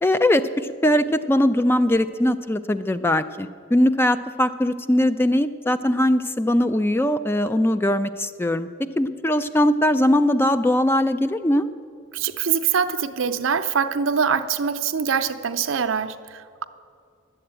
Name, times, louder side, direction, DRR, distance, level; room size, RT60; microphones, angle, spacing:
voice 1, 0.0-8.7 9.0-11.7, left 1 dB, 10° left, 0.3 m, -20 dB
voice 2, 12.1-16.6, right 6 dB, 75° right, 0.6 m, -24 dB
11.5 x 7.9 x 8.7 m
head